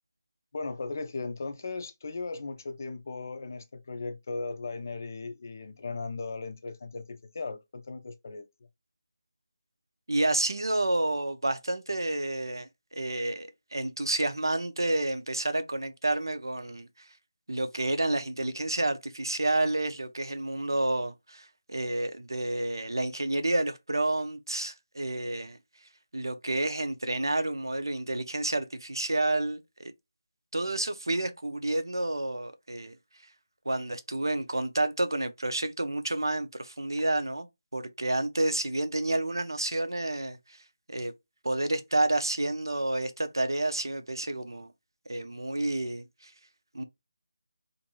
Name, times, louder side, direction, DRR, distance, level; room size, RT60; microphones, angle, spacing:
voice 1, 0.5-8.5, left 3 dB, 45° left, 0.5 m, -37 dB
voice 2, 10.1-17.1 17.5-25.6 26.1-29.9 30.5-33.0 33.7-37.5 37.7-40.6 40.9-41.1 41.4-44.7 45.1-46.3 46.7-46.8, right 2 dB, 85° right, 0.6 m, -30 dB
2.6 x 2.5 x 2.9 m
figure-of-eight pair, 160°, 2 cm